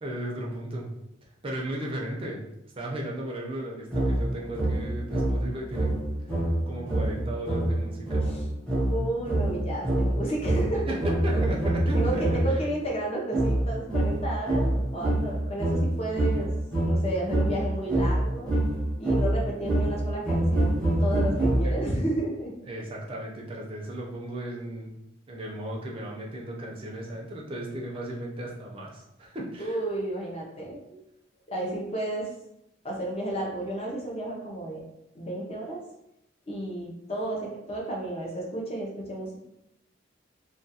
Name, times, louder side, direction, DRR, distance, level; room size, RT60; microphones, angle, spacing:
voice 1, 0.0-0.9 1.4-2.4 2.8-5.9 6.7-8.3 10.9-12.4 21.6-21.7 22.7-24.9 25.3-29.8, right 1 dB, 30° right, -2 dB, 0.5 m, -35 dB
sound 1, 3.9-12.7 13.3-22.0, right 1 dB, 5° left, 0.8 m, -26 dB
voice 2, 8.9-11.0 11.9-16.5 16.8-18.5 19.0-22.6 29.6-31.0 31.5-32.3 32.8-34.8 35.1-35.8 36.5-39.4, right 1 dB, 30° left, -1 dB, 0.6 m, -32 dB
2.3 x 2.2 x 2.7 m, 0.84 s
head